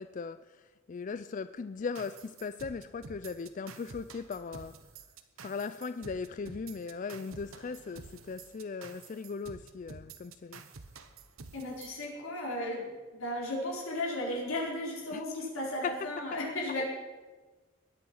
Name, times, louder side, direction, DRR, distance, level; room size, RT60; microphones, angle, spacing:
voice 1, 0.0-4.8 5.4-10.6 15.1-15.2 15.8-15.9, left 5 dB, 40° left, 13 dB, 0.4 m, -38 dB
sound 1, 1.9-12.0, right 4 dB, 90° right, 1.1 m, -50 dB
voice 2, 11.5-16.8, left 1 dB, 90° left, -3 dB, 4.8 m, -35 dB
21.0 x 8.8 x 5.6 m, 1.3 s
head